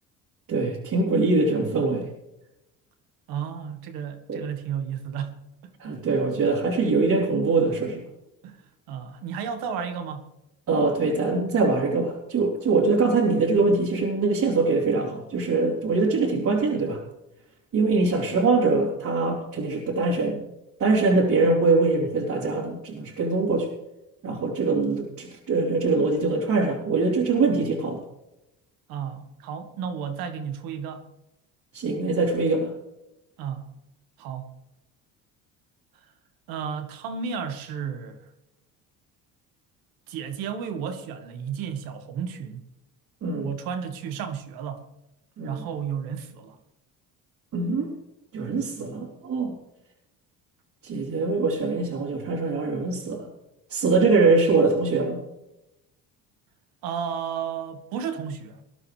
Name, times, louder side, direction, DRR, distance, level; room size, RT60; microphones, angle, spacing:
voice 1, 0.5-2.1 4.3-4.4 5.8-8.0 10.7-17.0 17.7-20.4 20.8-23.7 24.2-28.0 31.7-32.7 43.2-43.5 45.4-45.7 47.5-47.9 48.3-49.5 50.8-53.3 53.7-55.2, right 3 dB, 50° right, 3.5 m, -23 dB
voice 2, 3.3-5.7 8.4-10.3 28.9-31.0 33.4-33.7 34.2-34.5 36.5-38.2 40.1-42.6 43.4-44.9 45.4-46.6 56.8-58.6, right 7 dB, 80° right, 1.9 m, -33 dB
20.5 x 11.5 x 3.4 m
supercardioid pair, 90°, 35 cm